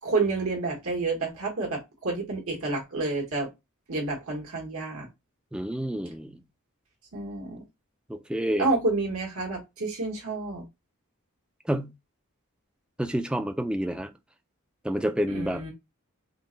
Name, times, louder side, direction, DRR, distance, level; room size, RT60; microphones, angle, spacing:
voice 1, 0.0-3.5 3.9-5.1 7.1-7.6 8.6-10.6 15.3-15.7, right 3 dB, 75° right, 1.3 m, -29 dB
voice 2, 5.5-6.4 8.1-8.7 11.7-11.9 13.0-14.1 14.8-15.6, equal, 5° right, 0.3 m, -29 dB
3.8 x 2.2 x 3.8 m
head